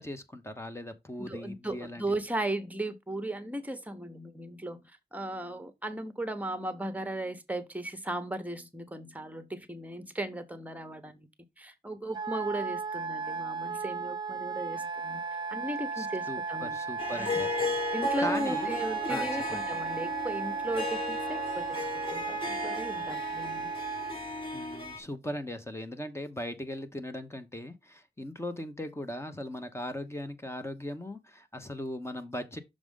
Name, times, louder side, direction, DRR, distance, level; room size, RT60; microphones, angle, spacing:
voice 1, 0.0-2.2 16.0-17.8 18.2-18.8 19.1-19.6 24.5-32.6, left 1 dB, 15° left, 0.9 m, -39 dB
voice 2, 1.2-4.8 5.1-11.3 11.6-15.2 15.5-16.8 17.1-17.5 17.9-23.7, right 1 dB, 10° right, 1.0 m, -36 dB
Wind instrument woodwind instrument, 12.1-24.2, right 5 dB, 25° right, 0.6 m, -35 dB
Harp, 17.0-25.0, left 2 dB, 30° left, 1.6 m, -35 dB
6.3 x 4.8 x 3.7 m
wide cardioid pair, 135°, 17 cm